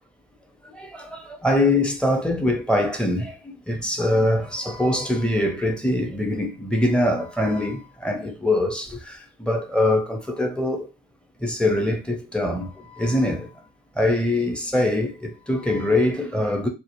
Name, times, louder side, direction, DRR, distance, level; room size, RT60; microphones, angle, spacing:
voice 1, 0.6-10.9 11.4-13.5 14.0-16.7, left 1 dB, 5° left, 0.7 m, -23 dB
2.2 x 2.1 x 3.0 m
hypercardioid pair, 55°, 29 cm